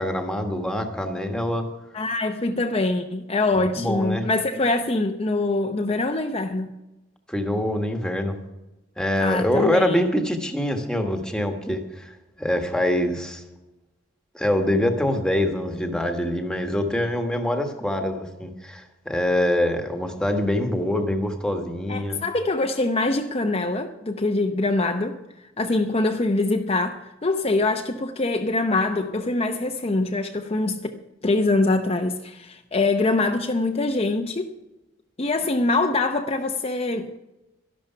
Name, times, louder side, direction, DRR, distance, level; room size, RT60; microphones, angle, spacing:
voice 1, 0.0-1.7 3.5-4.3 7.3-8.4 9.0-13.4 14.3-22.2, left 1 dB, 5° left, 1.4 m, -24 dB
voice 2, 1.9-6.7 9.2-10.1 21.9-25.2 25.6-31.0 31.2-34.5 35.2-37.2, left 2 dB, 30° left, 0.7 m, -24 dB
12.5 x 11.5 x 5.7 m
head